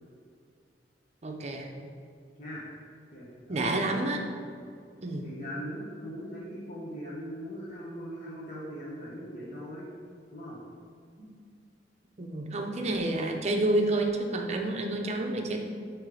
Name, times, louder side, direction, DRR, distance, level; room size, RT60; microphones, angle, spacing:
voice 1, 1.2-1.7 3.5-4.3 5.0-5.3 12.2-15.6, right 2 dB, 40° right, 3 dB, 0.7 m, -29 dB
voice 2, 3.1-3.6 5.2-9.9 10.3-10.6, equal, 45° left, -8 dB, 1.2 m, -40 dB
8.8 x 3.2 x 4.9 m, 2.3 s
head